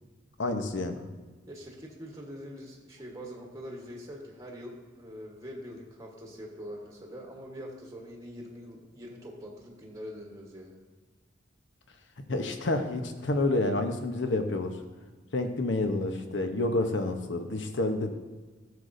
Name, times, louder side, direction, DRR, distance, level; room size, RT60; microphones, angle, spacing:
voice 1, 0.4-1.1 12.3-14.7 15.3-18.1, left 2 dB, 70° left, 6 dB, 0.8 m, -29 dB
voice 2, 1.5-10.8, equal, 15° right, -1 dB, 1.1 m, -44 dB
13.5 x 6.5 x 2.6 m, 1.3 s
head